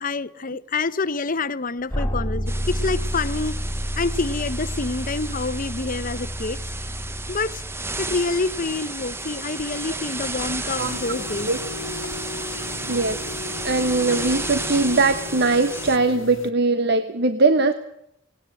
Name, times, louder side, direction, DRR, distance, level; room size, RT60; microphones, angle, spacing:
voice 1, 0.0-3.6 4.0-6.6 7.3-7.6 8.0-11.5, left 3 dB, 45° left, 0.9 m, -27 dB
sound 1, 1.9-8.8, equal, 15° left, 2.4 m, -30 dB
sound 2, 2.5-16.0, right 2 dB, 15° right, 1.0 m, -33 dB
sound 3, 10.8-16.5, left 3 dB, 75° left, 1.4 m, -35 dB
voice 2, 12.9-13.2 13.6-17.7, right 3 dB, 55° right, 1.2 m, -20 dB
19.0 x 18.5 x 7.8 m
head